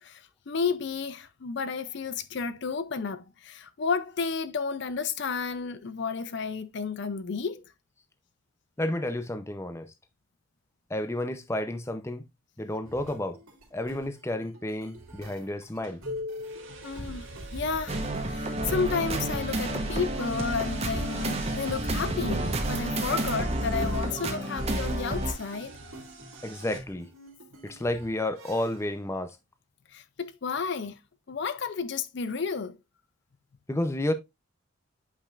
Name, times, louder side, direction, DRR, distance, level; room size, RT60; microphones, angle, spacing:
voice 1, 0.0-7.6 16.8-25.7 29.9-31.0 31.3-32.8, left 5 dB, 55° left, 0.5 m, -32 dB
voice 2, 8.8-9.9 10.9-12.3 12.6-13.4 13.7-16.0 26.4-27.1 27.6-29.4 33.7-34.1, left 1 dB, 15° left, 0.6 m, -31 dB
sound 1, 12.8-29.0, left 1 dB, 90° right, 2.6 m, -46 dB
sound 2, 15.8-15.9 16.5-26.8, right 1 dB, 60° right, 2.1 m, -39 dB
sound 3, 17.9-25.3, right 1 dB, 30° right, 1.0 m, -31 dB
8.5 x 5.3 x 2.5 m
head